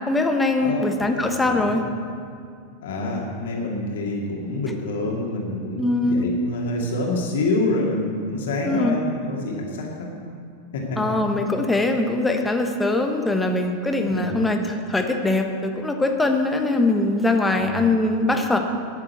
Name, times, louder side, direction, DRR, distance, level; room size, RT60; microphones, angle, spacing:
voice 1, 0.1-1.8 5.8-6.3 8.7-9.0 11.0-18.6, left 2 dB, 10° left, 4 dB, 1.2 m, -22 dB
voice 2, 1.1-1.8 2.8-10.1 10.7-11.0 14.1-14.4 17.5-18.0, left 2 dB, 60° left, -2 dB, 2.5 m, -27 dB
12.5 x 7.5 x 8.1 m, 2.3 s
figure-of-eight pair, 90°, 0 cm